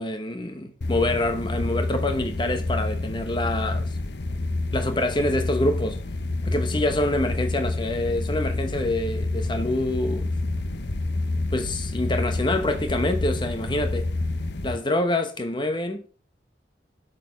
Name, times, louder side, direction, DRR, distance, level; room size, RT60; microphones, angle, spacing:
voice 1, 0.0-3.9 4.7-6.0 6.4-10.3 11.5-14.1 14.6-16.0, left 1 dB, 25° left, 1.0 m, -26 dB
sound 1, 0.8-14.8, left 2 dB, 65° left, 0.8 m, -28 dB
8.3 x 6.8 x 5.3 m
head